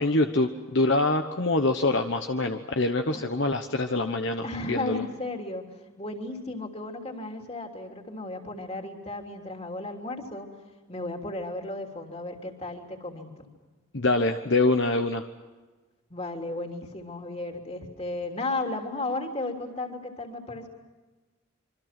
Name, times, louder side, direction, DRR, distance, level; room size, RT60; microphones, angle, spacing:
voice 1, 0.0-5.0 13.9-15.2, left 2 dB, 60° left, 6 dB, 1.1 m, -25 dB
voice 2, 4.4-5.6 6.0-10.5 10.9-13.5 16.1-20.7, left 2 dB, 30° left, 3 dB, 3.2 m, -34 dB
26.5 x 25.0 x 6.0 m, 1.3 s
head